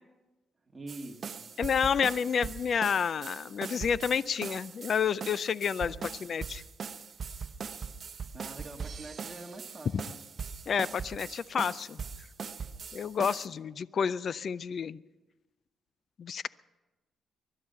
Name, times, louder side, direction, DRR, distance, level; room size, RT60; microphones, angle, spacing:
voice 1, 0.7-1.5 5.8-6.1 8.3-10.2, right 2 dB, 20° right, 1 dB, 2.1 m, -45 dB
sound 1, 0.9-13.5, right 6 dB, 45° right, 0.9 m, -41 dB
voice 2, 1.6-6.0 6.2-6.6 10.7-12.0 12.9-15.0 16.2-16.5, left 7 dB, 50° left, 19 dB, 0.4 m, -29 dB
21.0 x 12.0 x 5.6 m, 1.1 s
cardioid pair, 105°, 0 cm